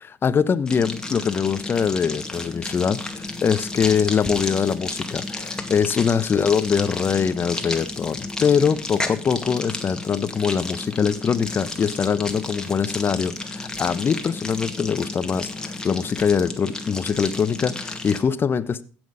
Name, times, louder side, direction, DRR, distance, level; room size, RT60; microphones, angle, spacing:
voice 1, 0.0-18.8, left 6 dB, 40° left, 0.9 m, -23 dB
sound 1, 0.7-18.2, left 2 dB, 10° left, 2.1 m, -32 dB
16.0 x 6.3 x 5.0 m
hypercardioid pair, 70°, 6 cm